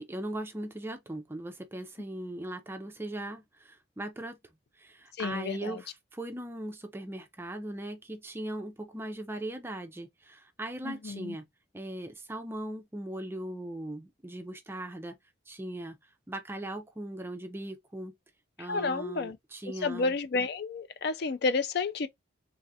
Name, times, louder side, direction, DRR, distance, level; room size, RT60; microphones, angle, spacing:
voice 1, 0.0-4.4 4.8-11.5 11.7-15.2 15.5-16.0 16.3-18.1 18.6-20.1, right 1 dB, 10° right, 0.4 m, -39 dB
voice 2, 5.2-5.8 10.8-11.3 18.6-19.4 19.8-22.1, left 4 dB, 55° left, 0.4 m, -31 dB
3.2 x 2.4 x 2.6 m
head